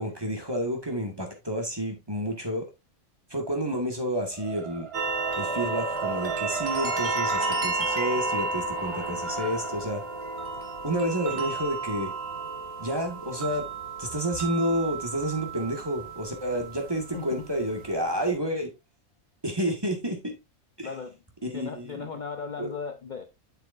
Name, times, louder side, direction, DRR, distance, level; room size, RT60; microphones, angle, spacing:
voice 1, 0.0-2.7 3.3-4.9 5.4-10.0 10.8-12.1 12.8-13.6 14.0-18.7 19.4-20.3 20.8-20.9 21.4-22.1 22.6-22.7, equal, 20° right, 1.8 m, -30 dB
sound 1, 4.3-14.5, right 5 dB, 50° right, 0.3 m, -39 dB
sound 2, 4.9-18.3, right 3 dB, 75° right, 1.8 m, -32 dB
voice 2, 17.1-17.5 20.8-21.1 21.5-23.2, left 5 dB, 45° left, 0.7 m, -36 dB
7.9 x 6.7 x 2.6 m
omnidirectional pair, 1.4 m